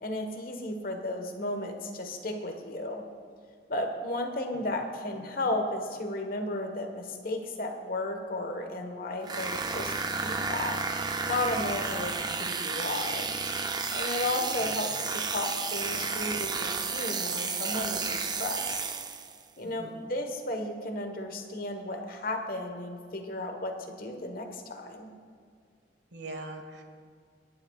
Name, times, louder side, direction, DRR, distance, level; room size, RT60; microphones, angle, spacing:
voice 1, 0.0-3.0 3.7-9.9 10.2-10.8 11.3-13.3 13.9-18.8 19.6-25.1, left 1 dB, 50° left, 4 dB, 1.3 m, -34 dB
sound 1, 9.2-19.4, right 4 dB, 25° right, 0.6 m, -32 dB
voice 2, 14.2-14.8 19.6-20.0 26.1-26.8, right 2 dB, 75° right, 4 dB, 1.5 m, -43 dB
23.0 x 10.5 x 2.4 m, 2.2 s
head